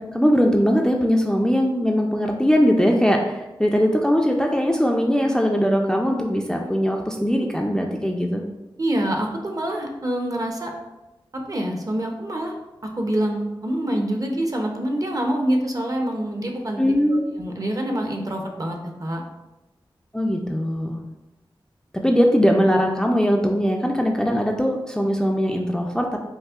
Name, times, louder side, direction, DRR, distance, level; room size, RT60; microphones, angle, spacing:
voice 1, 0.0-8.4 16.8-17.3 20.1-21.0 21.9-26.2, equal, 5° left, 1 dB, 0.3 m, -20 dB
voice 2, 8.8-10.7 11.3-12.5 13.0-16.8 17.1-19.2, right 1 dB, 40° right, 2 dB, 0.6 m, -26 dB
5.2 x 2.0 x 2.3 m, 1.0 s
cardioid pair, 50°, 9 cm